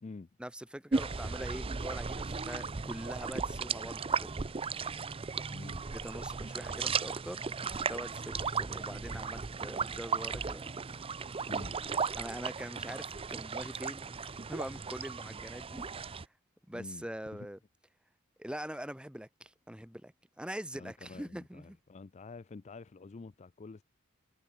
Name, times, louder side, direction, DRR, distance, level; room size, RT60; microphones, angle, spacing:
voice 1, 0.4-4.3 5.9-7.4 7.7-10.6 12.2-15.9 16.7-17.6 18.4-21.8, equal, 5° right, 1.8 m, -43 dB
sound 1, 0.9-16.2, right 5 dB, 25° right, 0.5 m, -36 dB
voice 2, 5.5-5.9 11.5-11.8 16.7-17.1 20.7-23.8, left 3 dB, 35° left, 0.4 m, -48 dB
head